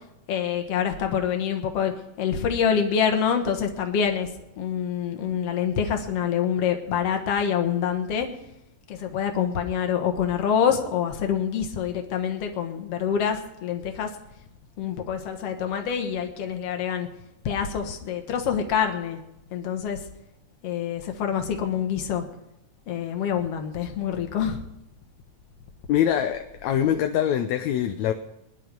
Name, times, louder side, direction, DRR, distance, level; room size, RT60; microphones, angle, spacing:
voice 1, 0.3-4.3 4.6-8.3 8.9-14.1 14.8-17.1 17.4-19.2 19.5-20.0 20.6-22.3 22.9-24.6, left 8 dB, 55° left, 5 dB, 2.3 m, -26 dB
voice 2, 25.9-28.1, left 10 dB, 75° left, 6 dB, 1.9 m, -23 dB
20.5 x 10.5 x 5.4 m, 0.90 s
omnidirectional pair, 3.5 m